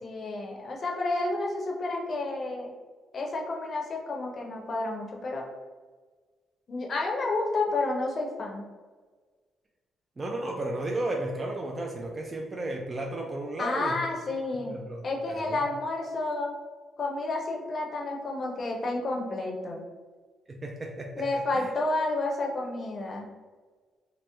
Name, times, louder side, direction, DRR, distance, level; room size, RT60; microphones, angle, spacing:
voice 1, 0.0-2.7 3.1-5.4 6.7-8.6 13.6-14.8 15.0-16.5 17.0-19.8 21.2-23.3, left 2 dB, 45° left, 0 dB, 0.6 m, -30 dB
voice 2, 10.2-14.0 14.7-15.6 20.5-21.7, right 2 dB, 30° right, 0 dB, 0.4 m, -34 dB
2.9 x 2.0 x 3.4 m, 1.4 s
cardioid pair, 90°, 0 cm